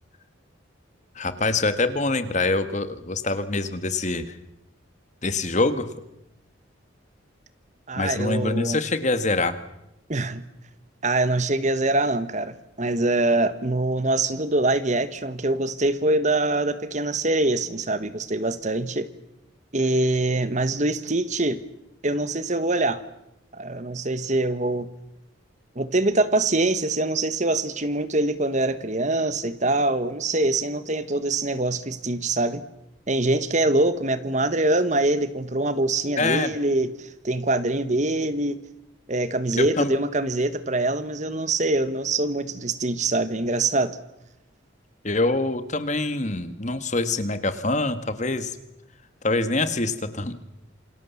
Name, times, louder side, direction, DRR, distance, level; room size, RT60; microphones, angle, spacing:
voice 1, 1.2-4.2 5.2-5.9 8.0-9.6 36.2-36.5 39.5-40.0 45.0-48.6 49.2-50.3, left 2 dB, 35° left, 11 dB, 1.8 m, -25 dB
voice 2, 7.9-8.8 10.1-10.4 11.0-19.1 19.7-21.6 22.0-23.0 23.5-24.9 25.7-32.6 33.1-38.6 39.1-44.0, right 2 dB, 35° right, 13 dB, 1.3 m, -24 dB
28.0 x 26.0 x 7.2 m, 0.87 s
head